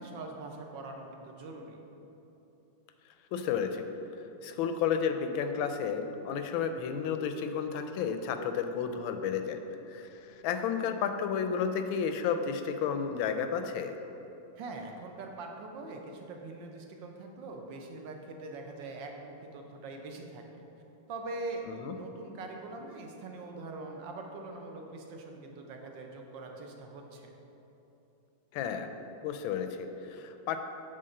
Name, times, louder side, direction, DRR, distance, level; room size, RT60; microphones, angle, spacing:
voice 1, 0.0-1.8 14.6-20.6 21.1-21.6 21.9-27.3, right 3 dB, 70° right, 2 dB, 1.5 m, -43 dB
voice 2, 3.3-3.9 4.4-9.6 9.9-14.0 21.7-21.9 28.5-28.9 29.2-30.6, left 7 dB, 80° left, 7 dB, 1.3 m, -32 dB
7.6 x 4.0 x 6.5 m, 3.0 s
omnidirectional pair, 2.2 m